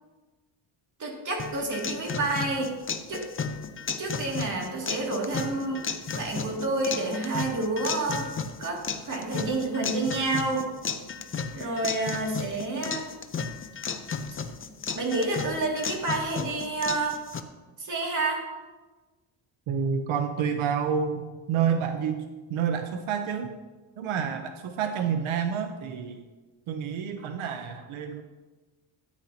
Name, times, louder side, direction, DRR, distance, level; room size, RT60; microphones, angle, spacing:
voice 1, 1.0-2.7 3.1-3.2 4.0-5.8 6.1-8.3 8.6-10.7 11.5-13.1 14.9-17.2 17.8-18.4, right 2 dB, 40° right, -2 dB, 2.5 m, -29 dB
sound 1, 1.4-17.4, left 5 dB, 25° left, 0.6 m, -34 dB
voice 2, 19.7-22.2 22.5-23.6 24.0-26.2 26.7-28.2, right 7 dB, 90° right, 6 dB, 0.9 m, -29 dB
13.5 x 9.7 x 2.9 m, 1.2 s
cardioid pair, 135°, 47 cm